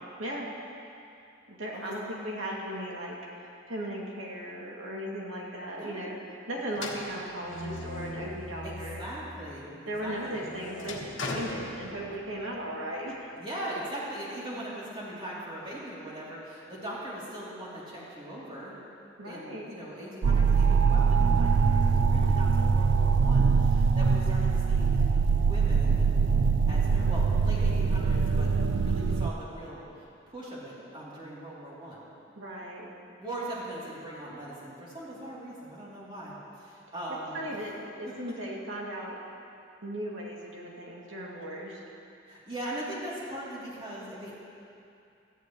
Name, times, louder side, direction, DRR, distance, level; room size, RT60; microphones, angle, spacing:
voice 1, 1.5-6.2 6.5-9.0 9.9-13.3 19.2-19.7 32.4-32.9 37.3-39.2 39.8-41.8, right 1 dB, 85° right, -3 dB, 2.5 m, -37 dB
voice 2, 5.7-6.1 8.6-10.5 13.4-18.8 19.2-25.0 25.3-26.1 26.7-28.5 28.8-29.8 30.3-32.1 33.2-37.3 42.3-44.3, right 1 dB, 25° right, -8 dB, 3.2 m, -40 dB
sound 1, 6.7-9.2 9.6-12.4, left 2 dB, 75° left, 1.6 m, -39 dB
sound 2, 20.2-29.3, right 5 dB, 65° right, 0.4 m, -23 dB
17.5 x 13.5 x 3.2 m, 2.6 s
head